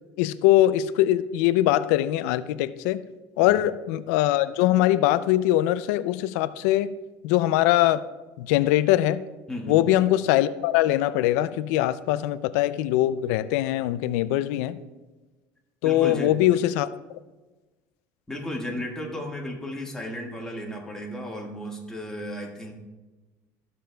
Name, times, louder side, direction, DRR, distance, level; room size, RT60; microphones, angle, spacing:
voice 1, 0.2-3.0 3.4-6.9 7.2-8.0 8.4-9.2 9.7-14.8 15.8-16.9, left 14 dB, 85° left, 15 dB, 0.4 m, -22 dB
voice 2, 9.5-9.8 15.8-16.4 18.3-22.7, left 1 dB, 5° left, -2 dB, 1.6 m, -34 dB
14.0 x 6.7 x 2.3 m, 1.2 s
supercardioid pair, 115°, 8 cm